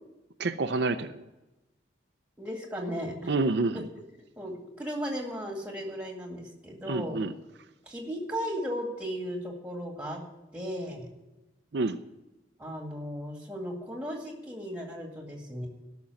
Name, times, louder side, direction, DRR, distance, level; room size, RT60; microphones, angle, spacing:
voice 1, 0.4-1.2 3.3-3.9 6.9-7.3 11.7-12.0, right 3 dB, 65° right, 8 dB, 0.5 m, -28 dB
voice 2, 2.4-3.3 4.4-7.2 7.9-10.2 10.5-11.1 12.6-15.7, equal, 5° right, 1 dB, 2.1 m, -36 dB
12.5 x 6.1 x 9.4 m, 1.0 s
head